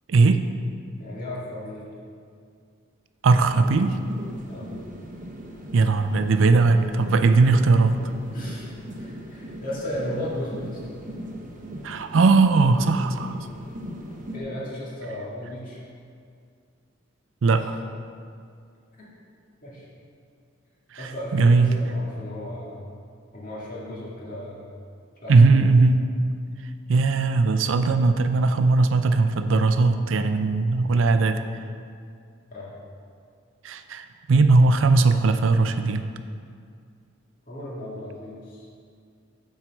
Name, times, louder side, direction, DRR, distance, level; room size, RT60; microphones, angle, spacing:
voice 1, 0.1-0.4 3.2-4.0 5.7-8.0 11.8-13.3 17.4-17.8 21.0-21.7 25.3-26.1 26.9-31.4 33.6-36.1, right 3 dB, 75° right, 9 dB, 0.5 m, -19 dB
voice 2, 1.0-1.9 4.5-4.7 8.3-8.7 9.0-10.8 14.3-15.8 17.6-17.7 19.6-19.9 21.0-22.9 23.3-24.6 25.2-25.8 32.5-32.8 37.5-38.7, left 1 dB, 45° left, -6 dB, 2.0 m, -35 dB
sound 1, 3.4-14.4, right 1 dB, 40° right, 0.9 m, -39 dB
7.8 x 4.5 x 6.0 m, 2.3 s
head